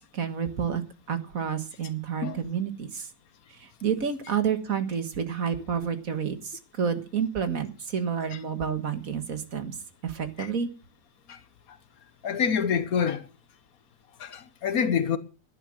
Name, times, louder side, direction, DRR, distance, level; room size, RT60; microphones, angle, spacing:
voice 1, 0.1-3.1 3.6-9.7 10.0-10.7, right 7 dB, 60° right, 2.0 m, -29 dB
voice 2, 12.2-13.3 14.2-15.2, left 7 dB, 65° left, 1.4 m, -27 dB
11.5 x 10.5 x 7.6 m
omnidirectional pair, 1.7 m